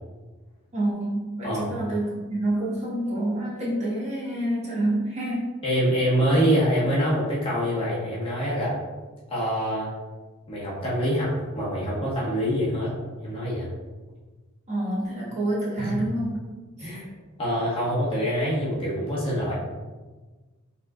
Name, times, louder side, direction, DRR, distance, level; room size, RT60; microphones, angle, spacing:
voice 1, 0.7-5.5 14.7-16.4 16.8-16.9, right 1 dB, 30° right, -8 dB, 1.4 m, -27 dB
voice 2, 5.6-8.8 9.3-9.9 10.5-12.9 13.2-13.7 15.8-16.0 16.8-17.1 17.4-19.5, equal, 25° left, -7 dB, 1.2 m, -25 dB
5.6 x 3.6 x 2.4 m, 1.3 s
head